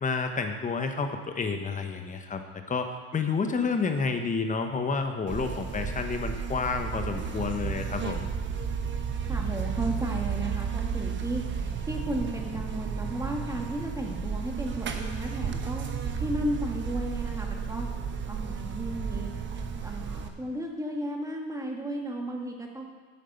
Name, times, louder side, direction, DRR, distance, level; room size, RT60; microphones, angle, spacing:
voice 1, 0.0-2.4 2.7-8.3, left 4 dB, 20° left, 6 dB, 1.2 m, -30 dB
Buzz, 5.3-20.3, right 6 dB, 30° right, 1.1 m, -33 dB
voice 2, 9.3-15.9 16.2-17.9 18.3-19.3 19.8-22.9, right 1 dB, 10° right, 1 dB, 1.9 m, -34 dB
9.3 x 6.5 x 7.9 m, 1.4 s
supercardioid pair, 110°, 39 cm